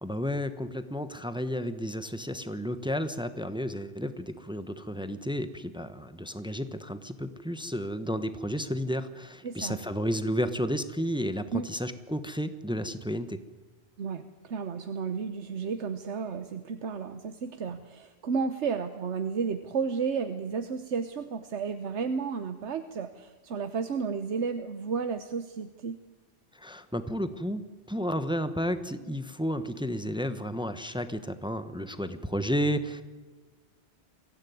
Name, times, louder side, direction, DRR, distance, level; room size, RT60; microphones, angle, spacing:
voice 1, 0.0-13.4 26.5-27.6 27.9-33.0, equal, 5° right, 11 dB, 1.0 m, -32 dB
voice 2, 9.4-9.8 11.5-11.7 14.0-26.0, right 5 dB, 85° right, 8 dB, 1.3 m, -32 dB
23.0 x 16.0 x 9.4 m, 1.3 s
omnidirectional pair, 1.1 m